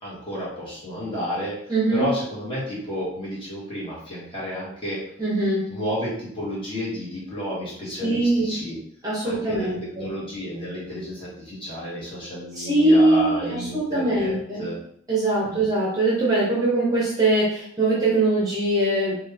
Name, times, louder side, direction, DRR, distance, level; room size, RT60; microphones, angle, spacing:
voice 1, 0.0-1.5 1.9-5.0 5.7-8.8 9.2-14.8 15.4-15.6, equal, 25° left, -8 dB, 1.3 m, -31 dB
voice 2, 1.7-2.1 5.2-5.7 8.0-8.6 9.0-10.1 12.5-14.7 15.1-19.2, right 2 dB, 20° right, -5 dB, 0.7 m, -22 dB
3.0 x 2.3 x 3.2 m, 0.67 s
head